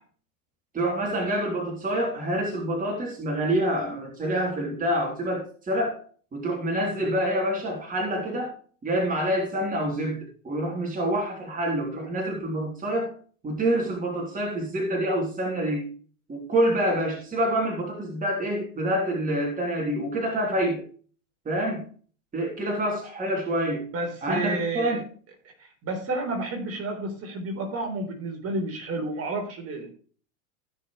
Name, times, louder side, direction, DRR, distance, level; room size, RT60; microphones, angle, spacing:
voice 1, 0.7-6.0 6.3-8.5 8.8-13.1 13.4-15.9 16.3-20.8 21.5-21.9 22.3-23.9 24.2-25.0, right 1 dB, 20° right, 0 dB, 3.5 m, -27 dB
voice 2, 23.9-25.0 25.8-29.9, right 2 dB, 35° right, 3 dB, 3.8 m, -30 dB
16.0 x 6.4 x 3.2 m, 0.42 s
hypercardioid pair, 110°, 42 cm